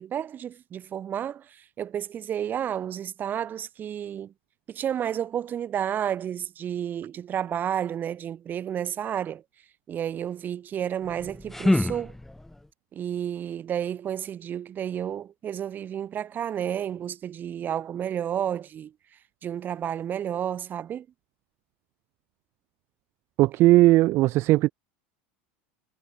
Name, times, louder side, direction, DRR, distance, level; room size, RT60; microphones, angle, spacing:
voice 1, 0.0-4.3 4.7-9.4 9.9-12.2 12.9-18.9 19.4-21.1, right 9 dB, 35° right, 1.2 m, -31 dB
sound 1, 11.0-12.7, left 1 dB, 5° left, 0.6 m, -27 dB
voice 2, 23.4-24.7, right 18 dB, 50° right, 0.5 m, -18 dB
supercardioid pair, 115°, 6 cm